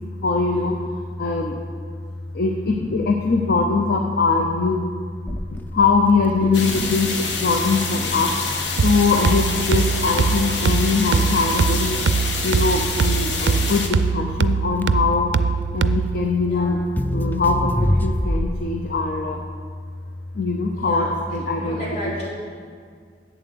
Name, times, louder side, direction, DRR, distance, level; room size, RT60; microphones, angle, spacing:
voice 1, 0.2-0.7 1.2-1.5 2.4-4.8 5.7-7.1 7.4-8.3 8.8-12.0 12.4-13.8 14.1-15.3 15.7-16.8 17.1-17.7 18.0-19.4 20.4-21.8, left 4 dB, 55° left, 2 dB, 0.7 m, -21 dB
Crackle, 5.3-18.8, left 1 dB, 10° left, 0.3 m, -28 dB
sound 1, 6.5-13.9, left 4 dB, 85° left, 1.1 m, -27 dB
sound 2, 8.8-16.3, right 5 dB, 70° right, 0.4 m, -22 dB
voice 2, 16.4-16.7 20.7-21.1 21.5-22.3, left 1 dB, 40° left, -6 dB, 3.0 m, -34 dB
8.1 x 7.1 x 6.7 m, 2.1 s
head